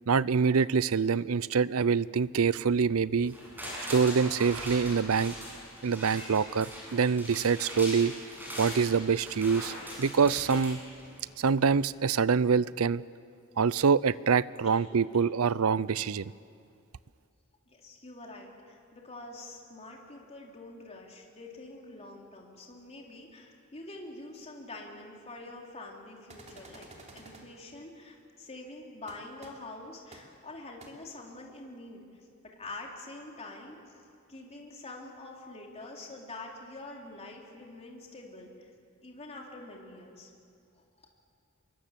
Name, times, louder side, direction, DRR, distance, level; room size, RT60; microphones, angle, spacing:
voice 1, 0.1-3.3 3.9-5.3 5.8-8.1 8.6-9.7 10.0-10.8 11.4-13.0 13.6-16.3, right 5 dB, 80° right, 19 dB, 0.5 m, -25 dB
sound 1, 3.2-11.4 11.8-11.9, equal, 10° right, 7.6 m, -41 dB
voice 2, 14.6-15.3 17.7-32.1 32.6-33.8 34.3-38.7 39.0-40.3 40.8-41.1, left 2 dB, 30° left, -1 dB, 3.7 m, -46 dB
sound 2, 26.3-27.4 29.1-29.2 29.4-29.5 30.1-30.2 30.8-30.9, right 2 dB, 35° right, 3.3 m, -50 dB
26.5 x 23.0 x 7.5 m, 2.4 s
head